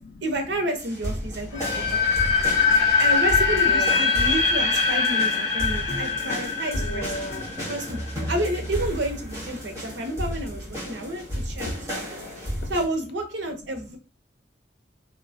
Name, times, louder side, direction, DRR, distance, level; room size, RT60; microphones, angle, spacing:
voice 1, 0.2-2.3 3.0-7.1 7.7-8.0 8.3-12.2 12.7-14.0, right 1 dB, 90° right, 0.7 m, -30 dB
sound 1, 0.8-12.9, equal, 15° right, 1.4 m, -33 dB
voice 2, 1.3-2.9 3.5-4.2 5.5-7.8 9.8-9.9 10.9-12.7, left 1 dB, 65° left, 0.5 m, -40 dB
sound 2, 1.5-8.4, left 5 dB, 20° left, 1.5 m, -23 dB
3.0 x 2.2 x 2.5 m
head